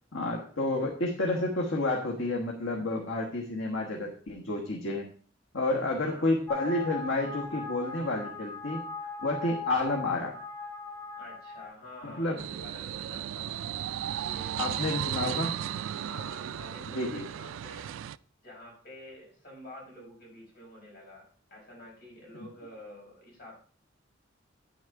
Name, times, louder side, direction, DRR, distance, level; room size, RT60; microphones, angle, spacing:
voice 1, 0.1-5.1 5.5-8.8 9.2-10.3 12.0-12.4 14.6-15.5 16.9-17.3, left 2 dB, 90° left, -1 dB, 1.4 m, -30 dB
voice 2, 5.7-6.4 11.2-13.7 14.2-15.5 15.9-17.9 18.4-23.5, left 1 dB, 50° left, -3 dB, 5.4 m, -49 dB
sound 1, 6.5-11.6, left 3 dB, 10° left, 4.0 m, -39 dB
sound 2, 12.4-18.2, right 11 dB, 90° right, 0.3 m, -35 dB
9.4 x 6.3 x 4.7 m, 0.44 s
head